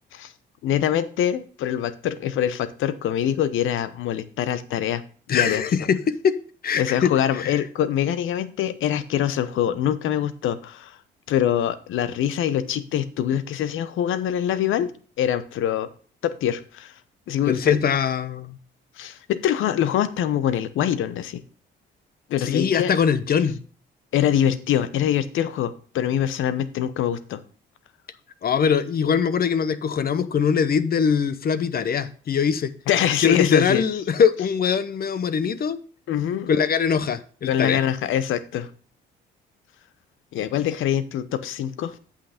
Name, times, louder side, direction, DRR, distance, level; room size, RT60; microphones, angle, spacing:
voice 1, 0.6-5.0 5.3-5.6 6.8-11.0 11.3-14.9 15.2-15.9 16.2-16.9 17.3-17.8 19.0-21.4 22.3-22.9 24.1-27.4 32.9-33.8 36.1-36.5 37.5-38.7 40.3-41.9, left 10 dB, 80° left, 0.9 m, -24 dB
voice 2, 5.3-6.4 6.6-7.6 17.5-18.6 22.4-23.6 28.4-32.7 33.2-35.8 36.5-37.8, left 7 dB, 50° left, 0.8 m, -22 dB
8.4 x 5.9 x 4.9 m
cardioid pair, 90°, 20 cm